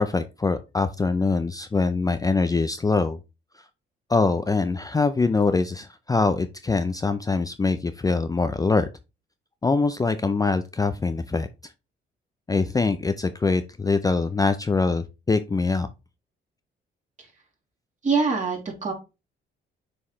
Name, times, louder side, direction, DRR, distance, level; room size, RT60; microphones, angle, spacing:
voice 1, 0.0-3.2 4.1-8.9 9.6-11.5 12.5-15.9, left 3 dB, 20° left, 0.5 m, -23 dB
voice 2, 18.0-18.9, right 4 dB, 40° right, 2.8 m, -24 dB
7.0 x 4.7 x 3.2 m
cardioid pair, 90°, 20 cm